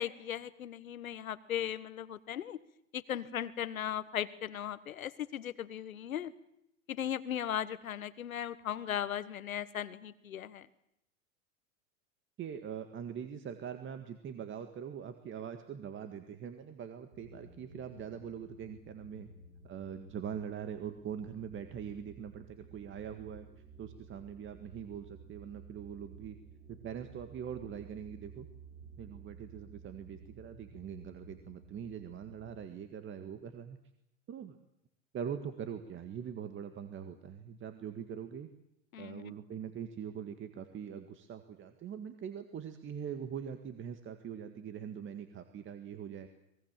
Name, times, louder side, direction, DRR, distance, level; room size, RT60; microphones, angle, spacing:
voice 1, 0.0-2.6 2.9-6.3 6.9-10.7 38.9-39.3, left 10 dB, 85° left, 15 dB, 1.4 m, -37 dB
voice 2, 12.4-19.3 19.6-23.5 23.8-26.4 26.7-28.5 29.0-33.8 34.3-34.6 35.1-38.5 39.0-46.3, right 8 dB, 30° right, 8 dB, 1.8 m, -43 dB
sound 1, 17.1-32.7, right 4 dB, 75° right, 5.7 m, -55 dB
24.0 x 21.5 x 7.5 m, 0.80 s
hypercardioid pair, 105°, 40 cm